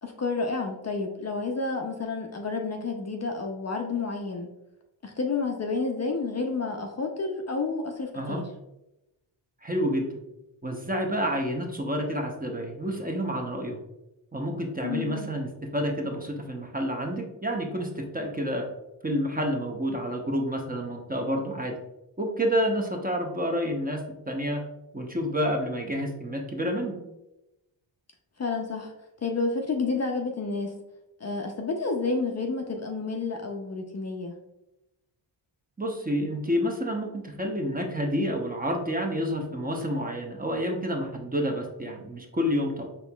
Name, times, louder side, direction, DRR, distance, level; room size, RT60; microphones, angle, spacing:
voice 1, 0.0-4.5 5.0-8.4 14.8-15.3 28.4-28.9 29.2-30.7 31.2-34.3, left 3 dB, 35° left, 2 dB, 0.5 m, -30 dB
voice 2, 9.6-10.1 10.6-13.8 14.3-18.7 19.0-21.7 22.2-24.6 24.9-27.0 35.8-42.8, equal, 20° right, 1 dB, 0.7 m, -29 dB
4.2 x 2.9 x 2.2 m, 0.92 s
cardioid pair, 50°, 47 cm